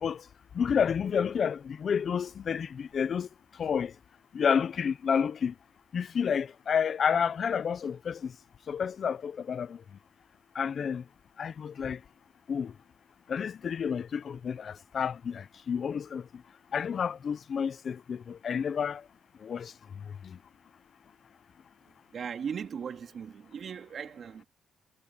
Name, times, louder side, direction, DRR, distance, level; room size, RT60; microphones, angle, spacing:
voice 1, 0.5-3.3 3.6-3.9 4.3-5.5 5.9-8.3 8.7-9.8 10.5-11.0 11.4-12.0 12.5-12.7 13.3-16.4 16.7-19.0 19.4-20.4, left 7 dB, 50° left, 0.8 m, -30 dB
voice 2, 22.1-24.4, right 7 dB, 55° right, 2.8 m, -38 dB
cardioid pair, 90°, 0 cm